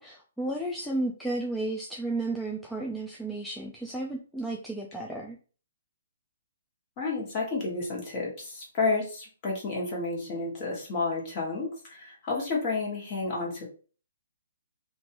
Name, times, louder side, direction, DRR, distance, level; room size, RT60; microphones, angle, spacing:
voice 1, 0.0-5.4, right 2 dB, ahead, -1 dB, 0.3 m, -33 dB
voice 2, 7.0-13.6, left 3 dB, 25° left, -3 dB, 1.4 m, -31 dB
3.0 x 2.6 x 2.9 m, 0.38 s
hypercardioid pair, 160°, 0 cm